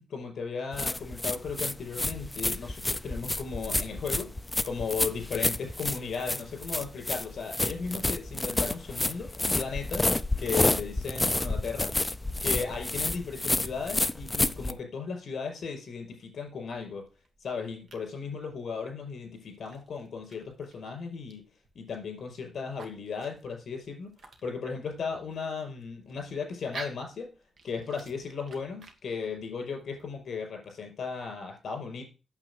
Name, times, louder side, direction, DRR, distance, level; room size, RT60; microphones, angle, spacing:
voice 1, 0.0-4.3 4.6-11.9 12.4-17.1 17.4-21.4 21.8-27.3 27.6-32.0, left 5 dB, 55° left, 3 dB, 5.2 m, -36 dB
sound 1, 0.7-14.7, left 2 dB, 10° left, 0.5 m, -29 dB
sound 2, 16.3-30.2, right 3 dB, 50° right, 1.8 m, -52 dB
8.9 x 7.5 x 6.4 m, 0.33 s
wide cardioid pair, 160°, 0 cm